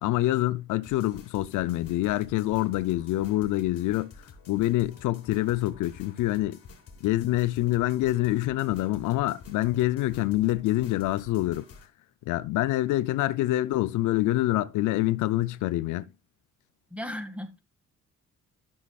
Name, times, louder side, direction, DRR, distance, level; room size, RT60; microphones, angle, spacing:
voice 1, 0.0-6.6 7.0-11.6 12.3-16.1, left 16 dB, 85° left, 0.5 m, -26 dB
sound 1, 0.8-11.9, left 4 dB, 50° left, 2.7 m, -50 dB
voice 2, 16.9-17.6, left 1 dB, 5° right, 1.8 m, -36 dB
12.5 x 6.3 x 2.3 m
cardioid pair, 90°, 30 cm